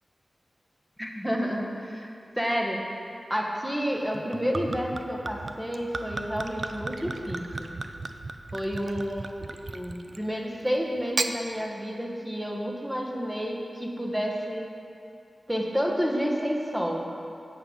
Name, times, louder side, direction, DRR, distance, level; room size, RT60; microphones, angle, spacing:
voice 1, 1.0-2.1 2.4-2.8 3.3-7.7 8.5-14.7 15.5-17.0, equal, 5° right, -1 dB, 1.3 m, -30 dB
Gurgling / Chink clink / Liquid, 4.1-10.3 11.0-11.4, right 3 dB, 65° right, 0.4 m, -35 dB
8.8 x 6.1 x 5.2 m, 2.5 s
cardioid pair, 55°, 0 cm